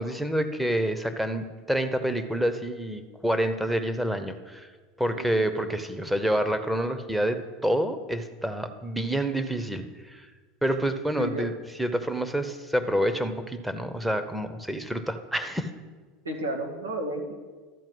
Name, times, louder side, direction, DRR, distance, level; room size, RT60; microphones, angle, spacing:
voice 1, 0.0-4.7 5.0-10.3 10.6-11.5 11.8-15.7, right 1 dB, 5° right, 8 dB, 0.9 m, -28 dB
voice 2, 5.1-5.6 11.2-11.5 16.2-17.3, right 1 dB, 90° right, 2 dB, 1.3 m, -32 dB
12.5 x 4.5 x 7.8 m, 1.4 s
hypercardioid pair, 80°, 0 cm